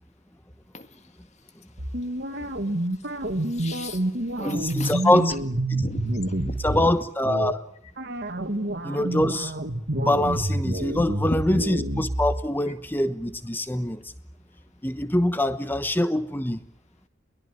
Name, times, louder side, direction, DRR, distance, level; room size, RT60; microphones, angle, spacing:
sound 1, 1.8-6.9 7.3-7.5 8.0-12.4, right 1 dB, 50° right, 2.2 m, -28 dB
voice 1, 2.3-5.2 5.7-6.9 11.3-11.9, left 2 dB, 30° left, 8 dB, 1.9 m, -38 dB
voice 2, 4.4-5.3 6.6-7.6 8.8-9.5 9.9-14.0 14.8-16.6, left 1 dB, 10° left, 12 dB, 1.0 m, -24 dB
22.0 x 21.0 x 9.5 m, 0.69 s
head